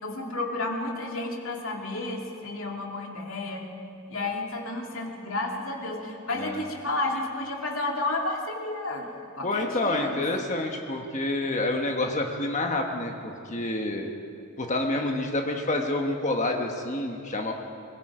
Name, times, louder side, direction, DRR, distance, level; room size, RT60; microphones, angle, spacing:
voice 1, 0.0-3.7 4.1-9.1 9.3-10.2 10.6-10.7, left 2 dB, 65° left, 0 dB, 2.9 m, -31 dB
voice 2, 9.4-14.1 14.6-17.5, left 2 dB, 35° left, 3 dB, 1.4 m, -28 dB
25.0 x 21.5 x 5.0 m, 2.6 s
head